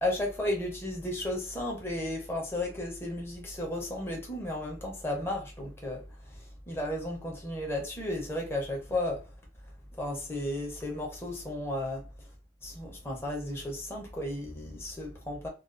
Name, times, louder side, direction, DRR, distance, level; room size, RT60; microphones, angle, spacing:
voice 1, 0.0-9.2 10.0-12.1 12.6-15.5, left 1 dB, 15° left, 0.6 m, -34 dB
2.3 x 2.3 x 2.4 m
head